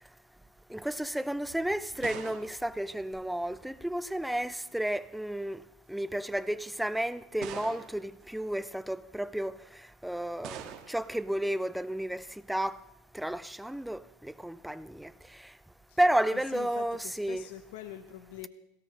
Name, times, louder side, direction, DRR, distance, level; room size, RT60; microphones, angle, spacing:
voice 1, 0.7-5.6 5.9-9.6 10.0-12.8 13.1-15.4 16.0-17.5, right 1 dB, ahead, 0.4 m, -32 dB
sound 1, 1.4-3.8 4.8-5.3 6.1-6.2 7.4-8.2 10.4-11.2, right 9 dB, 45° right, 1.5 m, -45 dB
voice 2, 16.3-18.5, left 11 dB, 70° left, 0.8 m, -44 dB
17.5 x 17.0 x 3.3 m
supercardioid pair, 140°, 0 cm